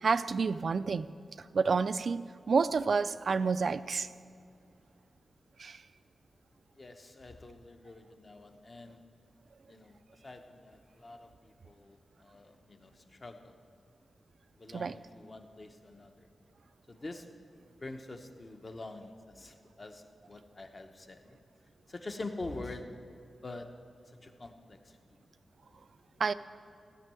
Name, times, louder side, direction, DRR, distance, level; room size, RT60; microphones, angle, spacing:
voice 1, 0.0-1.1 1.4-4.1 5.6-5.8 14.7-14.9 26.2-26.3, right 5 dB, 55° right, 0.4 m, -29 dB
voice 2, 6.8-9.0 9.7-10.0 10.2-13.5 14.6-16.3 16.9-17.3 17.8-21.4 21.9-23.0 23.4-23.7 24.2-25.2 26.1-26.2, left 2 dB, 30° left, 0.9 m, -45 dB
15.5 x 5.4 x 9.0 m
wide cardioid pair, 140°, 0 cm